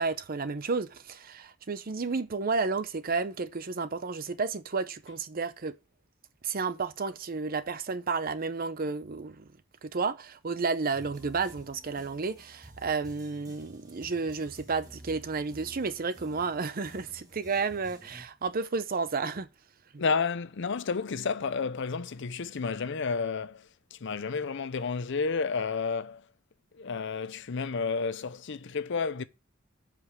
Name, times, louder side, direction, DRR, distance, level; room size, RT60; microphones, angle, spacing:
voice 1, 0.0-5.8 6.4-9.5 9.8-19.5 19.9-20.0, right 4 dB, 45° right, 0.7 m, -32 dB
sound 1, 10.9-18.2, right 1 dB, 20° right, 1.7 m, -51 dB
voice 2, 20.0-26.2 26.7-29.2, left 5 dB, 60° left, 0.6 m, -31 dB
8.0 x 5.2 x 6.7 m
head